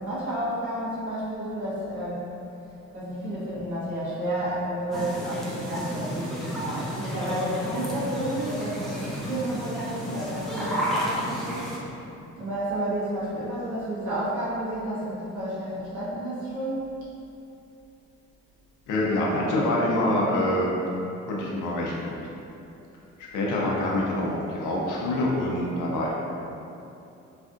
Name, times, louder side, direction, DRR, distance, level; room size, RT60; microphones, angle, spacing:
voice 1, 0.0-2.3 2.9-11.8 12.4-16.9, right 1 dB, 70° right, -10 dB, 1.3 m, -31 dB
sound 1, 4.9-11.8, equal, ahead, 0.5 m, -32 dB
voice 2, 18.9-20.7 21.3-22.2 23.3-26.1, left 1 dB, 85° left, -4 dB, 0.6 m, -25 dB
3.2 x 2.5 x 2.4 m, 2.8 s
cardioid pair, 90°, 30 cm